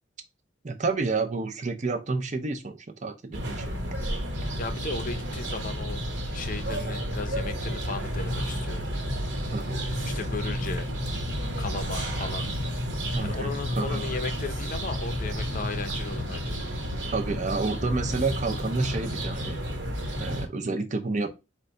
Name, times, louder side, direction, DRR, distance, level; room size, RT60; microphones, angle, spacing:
voice 1, 0.6-3.7 9.5-9.8 13.1-14.0 17.1-19.6 20.2-21.3, right 3 dB, 40° right, 0.6 m, -30 dB
sound 1, 3.3-20.5, equal, 60° right, 1.1 m, -31 dB
voice 2, 4.6-6.0 6.3-8.9 10.1-10.9 11.6-12.5 13.2-16.6, left 3 dB, 45° left, 0.6 m, -36 dB
4.5 x 2.2 x 3.8 m
head